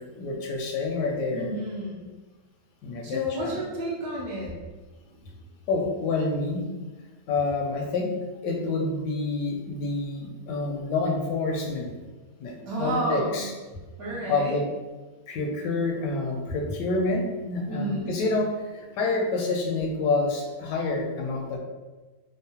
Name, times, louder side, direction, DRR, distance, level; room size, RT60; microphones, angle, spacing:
voice 1, 0.0-1.5 2.8-3.6 5.7-6.6 7.3-8.1 8.4-11.9 12.4-13.5 14.3-14.6 15.3-21.6, left 3 dB, 85° left, 1 dB, 1.2 m, -28 dB
voice 2, 1.3-2.1 3.0-4.5 12.5-13.5 14.0-14.6 17.7-18.1, equal, 60° right, -5 dB, 1.2 m, -31 dB
3.6 x 2.0 x 2.7 m, 1.2 s
omnidirectional pair, 1.8 m